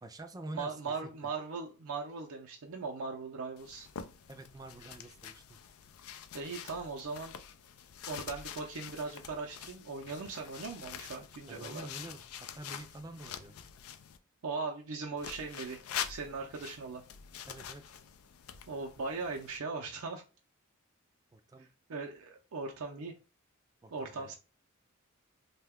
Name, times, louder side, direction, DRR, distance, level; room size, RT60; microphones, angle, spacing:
voice 1, 0.0-1.3 4.3-5.6 11.5-13.6 17.5-17.9 21.3-21.7 23.8-24.3, right 2 dB, 15° right, 8 dB, 0.3 m, -47 dB
voice 2, 0.5-3.9 6.3-7.3 8.1-11.8 14.4-15.8 16.1-17.0 18.7-20.2 21.9-23.1 23.9-24.3, right 4 dB, 80° right, 1 dB, 0.5 m, -39 dB
sound 1, 3.6-14.2 15.2-19.6, left 8 dB, 85° left, 0.4 m, -46 dB
2.7 x 2.2 x 3.5 m, 0.33 s
head